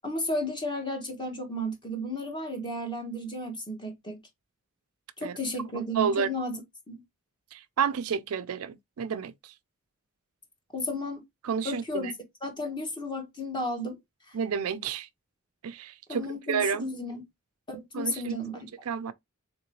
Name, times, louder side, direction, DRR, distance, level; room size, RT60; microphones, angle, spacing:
voice 1, 0.0-4.2 5.2-6.6 6.9-7.0 10.7-11.2 11.6-12.1 12.4-14.0 14.3-14.4 16.1-17.2 17.7-18.7, left 1 dB, 20° left, 1.3 m, -33 dB
voice 2, 6.0-6.3 7.5-9.5 11.4-12.1 14.3-15.1 15.6-16.9 17.9-18.3 18.9-19.1, right 6 dB, 85° right, 0.4 m, -30 dB
3.8 x 3.6 x 3.0 m
head